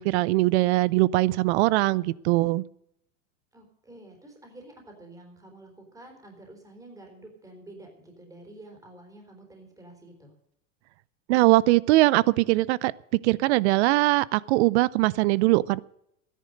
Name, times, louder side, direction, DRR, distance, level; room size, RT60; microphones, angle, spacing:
voice 1, 0.0-2.6 11.3-12.9 13.2-15.8, right 19 dB, 60° right, 22 dB, 0.7 m, -21 dB
voice 2, 3.5-10.3, right 2 dB, 10° right, 2 dB, 3.8 m, -49 dB
13.5 x 10.5 x 6.5 m, 0.76 s
supercardioid pair, 125°, 38 cm